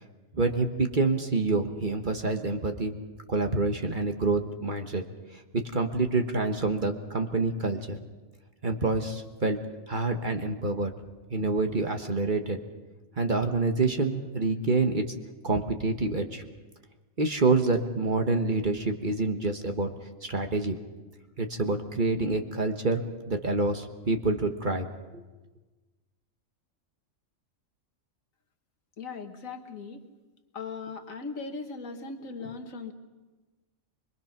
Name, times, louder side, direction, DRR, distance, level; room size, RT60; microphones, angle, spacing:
voice 1, 0.3-3.0 3.3-5.0 5.3-8.0 8.6-9.6 9.9-10.9 11.3-12.6 13.2-15.1 15.4-16.4 17.2-19.9 20.2-20.8 21.4-24.9 25.1-25.2, right 3 dB, 40° right, 5 dB, 1.4 m, -27 dB
voice 2, 29.0-30.0 30.5-32.9, left 4 dB, 75° left, 6 dB, 1.9 m, -38 dB
25.0 x 22.0 x 5.9 m, 1.2 s
omnidirectional pair, 1.4 m